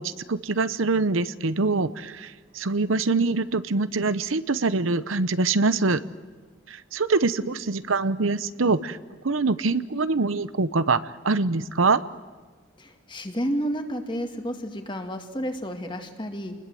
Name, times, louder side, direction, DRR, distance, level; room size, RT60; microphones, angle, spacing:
voice 1, 0.0-6.0 6.7-9.0 9.2-11.0 11.2-12.0, right 3 dB, 90° right, 14 dB, 0.9 m, -24 dB
voice 2, 12.8-16.5, equal, 25° left, 5 dB, 2.2 m, -31 dB
28.5 x 20.5 x 7.9 m, 1.4 s
head